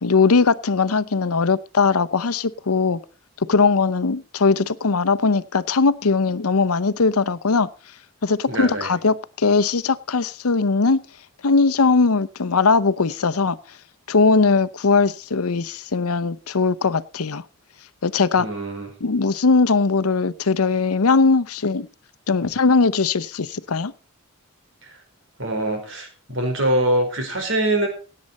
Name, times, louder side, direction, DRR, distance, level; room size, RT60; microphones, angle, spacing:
voice 1, 0.0-3.0 3.4-7.7 8.2-11.0 11.4-13.6 14.1-17.4 18.0-18.5 19.0-21.9 22.3-23.9, left 4 dB, 90° left, 0.8 m, -19 dB
voice 2, 8.5-8.9 18.4-18.9 24.8-25.0 25.4-27.9, right 1 dB, 60° right, 4.8 m, -23 dB
17.0 x 8.7 x 4.2 m
head